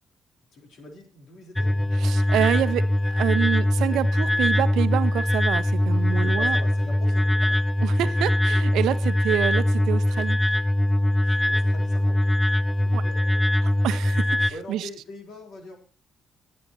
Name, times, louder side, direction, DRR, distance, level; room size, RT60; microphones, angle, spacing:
voice 1, 0.5-1.7 2.4-2.6 6.2-7.6 8.0-8.1 11.2-13.6 14.5-15.8, left 2 dB, 70° left, 4.1 m, -43 dB
sound 1, 1.6-14.5, left 1 dB, 10° left, 0.5 m, -22 dB
voice 2, 2.0-6.6 7.8-10.6 12.9-13.0 13.6-14.9, right 12 dB, 85° right, 0.7 m, -27 dB
19.5 x 9.5 x 3.0 m
cardioid pair, 90°, 0 cm